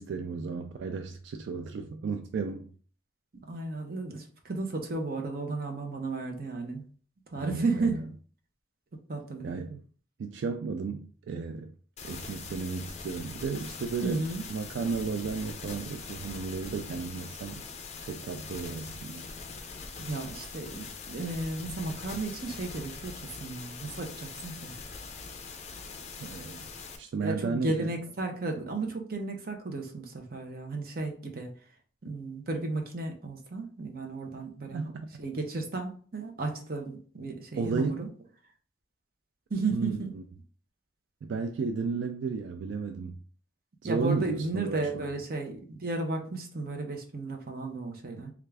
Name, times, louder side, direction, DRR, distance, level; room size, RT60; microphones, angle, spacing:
voice 1, 0.0-2.7 7.3-8.0 9.4-9.8 10.2-11.7 12.0-17.6 18.0-19.3 26.2-26.6 27.0-27.9 34.7-35.1 37.6-38.1 39.7-40.2 41.2-43.2 43.8-45.1, right 5 dB, 80° right, 0.3 m, -33 dB
voice 2, 3.5-6.9 7.3-8.1 9.1-9.6 14.0-14.5 20.0-24.7 27.2-31.5 32.0-34.9 35.2-38.1 39.5-40.2 43.8-48.3, right 3 dB, 50° right, 0.7 m, -34 dB
sound 1, 12.0-27.0, left 4 dB, 35° left, 0.4 m, -42 dB
3.4 x 2.4 x 3.3 m
head